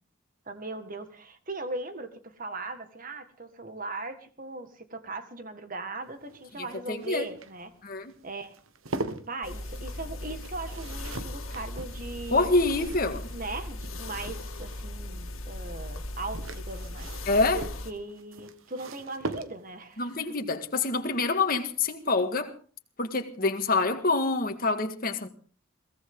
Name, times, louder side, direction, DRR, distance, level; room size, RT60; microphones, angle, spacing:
voice 1, 0.5-7.7 8.2-8.6 9.3-12.5 13.3-17.3 17.5-20.3, right 2 dB, 40° right, 1.9 m, -39 dB
sound 1, 6.1-14.9 16.0-19.9 21.5-21.9 22.1-22.2, right 2 dB, 75° right, 1.4 m, -42 dB
voice 2, 6.6-7.3 7.8-8.1 12.3-13.3 17.3-17.6 20.0-22.5 23.0-25.3, left 3 dB, 45° left, 1.8 m, -26 dB
sound 2, 9.4-17.9, left 1 dB, 75° left, 2.2 m, -38 dB
22.5 x 16.5 x 3.8 m
head